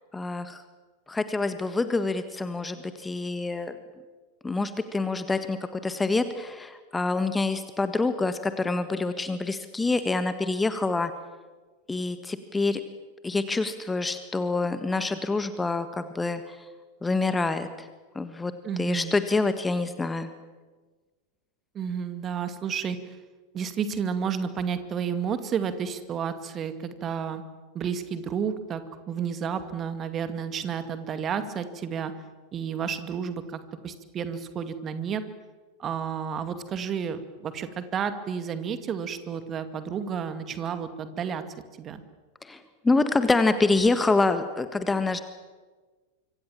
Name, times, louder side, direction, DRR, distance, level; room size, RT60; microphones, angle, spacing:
voice 1, 0.1-0.6 1.1-3.8 4.4-11.1 11.9-12.8 13.2-16.6 17.0-17.9 18.1-18.5 18.8-20.3 42.4-45.2, left 3 dB, 10° left, 10 dB, 1.6 m, -26 dB
voice 2, 18.6-19.1 21.7-23.0 23.5-27.4 27.7-28.8 29.1-32.1 32.5-35.2 35.8-41.4 41.8-42.0, right 7 dB, 25° right, 10 dB, 2.2 m, -31 dB
25.5 x 25.0 x 7.4 m, 1.3 s
figure-of-eight pair, 90°, 0 cm